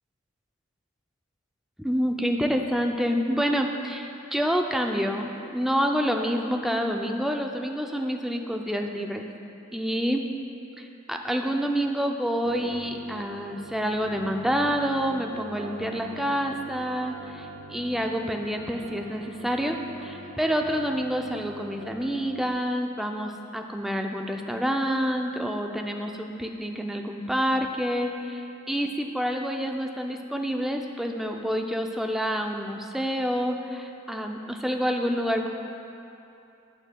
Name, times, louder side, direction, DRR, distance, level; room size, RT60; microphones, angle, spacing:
voice 1, 1.8-9.3 9.7-10.2 10.8-35.5, equal, ahead, 3 dB, 0.3 m, -28 dB
sound 1, 12.4-22.5, right 2 dB, 75° right, 0.4 m, -43 dB
11.5 x 6.3 x 2.2 m, 2.8 s
head